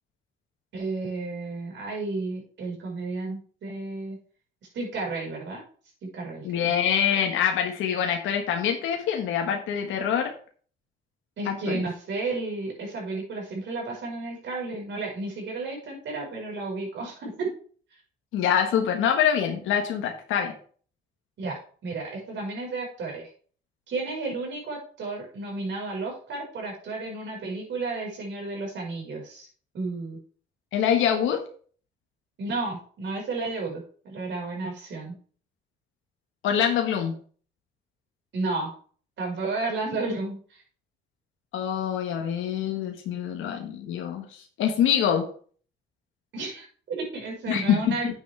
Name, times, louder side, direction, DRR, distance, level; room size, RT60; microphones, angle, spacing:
voice 1, 0.7-4.2 4.7-5.6 6.0-6.7 11.4-17.5 21.4-23.3 23.9-29.5 29.7-30.2 32.4-35.1 38.3-38.8 39.2-40.6 46.3-48.1, right 3 dB, 65° right, 1 dB, 5.1 m, -32 dB
voice 2, 6.4-10.3 11.5-11.8 18.3-20.5 30.7-31.4 36.4-37.1 41.5-45.3 47.5-47.9, left 8 dB, 85° left, 3 dB, 1.5 m, -25 dB
9.4 x 8.3 x 3.4 m, 0.44 s
cardioid pair, 90°, 20 cm